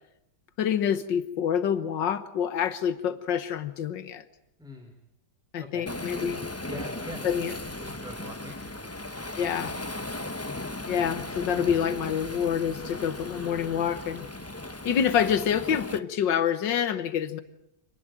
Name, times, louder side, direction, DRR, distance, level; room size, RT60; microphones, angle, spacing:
voice 1, 0.6-4.2 5.5-6.4 7.2-7.5 9.4-9.7 10.9-14.3 14.9-17.4, left 8 dB, 90° left, 12 dB, 1.9 m, -27 dB
voice 2, 4.6-4.9 5.6-5.9 6.7-7.5 7.8-10.0, left 1 dB, ahead, 4 dB, 3.4 m, -44 dB
Waves surf, 5.9-16.0, left 2 dB, 15° left, 0.6 m, -37 dB
27.5 x 19.5 x 9.0 m, 0.85 s
omnidirectional pair, 1.9 m